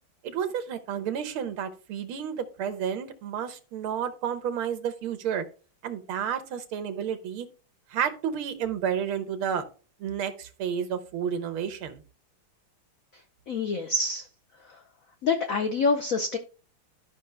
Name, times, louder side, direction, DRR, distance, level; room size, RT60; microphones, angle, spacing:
voice 1, 0.2-5.4 5.8-7.5 7.9-9.6 10.0-12.0, right 8 dB, 75° right, 1.8 m, -31 dB
voice 2, 13.5-14.3 14.6-14.8 15.2-16.4, left 3 dB, 75° left, 0.7 m, -26 dB
12.0 x 5.5 x 3.3 m
omnidirectional pair, 2.3 m